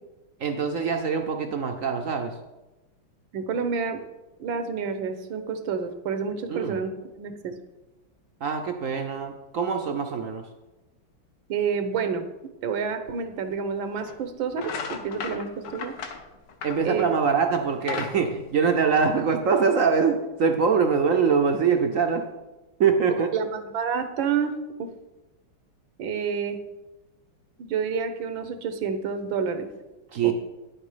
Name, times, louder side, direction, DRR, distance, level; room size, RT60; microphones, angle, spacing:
voice 1, 0.4-2.4 6.5-6.8 8.4-10.5 16.6-22.3 22.8-23.3 30.1-30.3, right 5 dB, 60° right, 5 dB, 0.8 m, -23 dB
voice 2, 3.3-4.0 4.4-7.5 11.5-12.3 12.6-15.9 16.8-17.1 23.3-24.9 26.0-26.6 27.6-29.7 30.2-30.3, right 6 dB, 80° right, 9 dB, 1.7 m, -29 dB
sound 1, 13.2-13.3 14.0-14.2 14.5-17.3 17.6-19.3, left 6 dB, 65° left, 1.5 m, -36 dB
10.5 x 7.7 x 4.9 m, 1.1 s
omnidirectional pair, 2.1 m